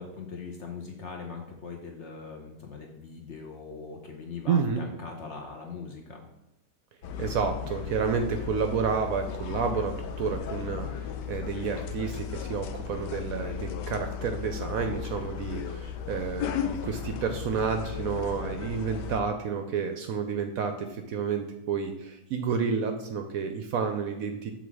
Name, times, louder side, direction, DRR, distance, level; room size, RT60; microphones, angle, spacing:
voice 1, 0.0-6.2, left 5 dB, 55° left, 2 dB, 0.9 m, -41 dB
voice 2, 4.5-4.8 7.2-24.5, right 6 dB, 70° right, 6 dB, 0.9 m, -30 dB
sound 1, 7.0-19.2, left 8 dB, 80° left, 1.2 m, -35 dB
7.1 x 3.7 x 4.7 m, 0.89 s
omnidirectional pair, 1.8 m